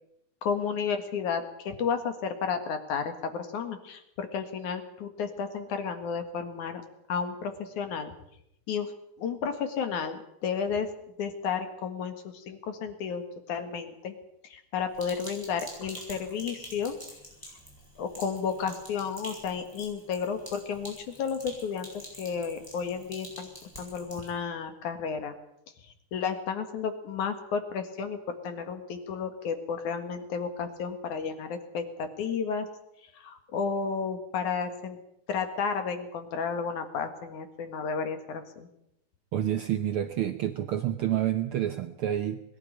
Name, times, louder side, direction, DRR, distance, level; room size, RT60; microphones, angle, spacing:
voice 1, 0.4-6.8 7.1-8.1 8.7-8.9 9.2-10.9 11.2-13.2 13.5-14.1 14.4-16.9 18.0-21.9 22.2-23.5 23.8-25.3 26.1-32.7 33.1-35.0 35.3-38.7, left 6 dB, 75° left, 8 dB, 3.2 m, -32 dB
Sink (filling or washing), 14.9-24.3, equal, 5° left, 8.0 m, -47 dB
voice 2, 39.3-42.4, right 11 dB, 80° right, 8 dB, 1.2 m, -28 dB
21.5 x 12.0 x 10.0 m, 0.77 s
omnidirectional pair, 3.6 m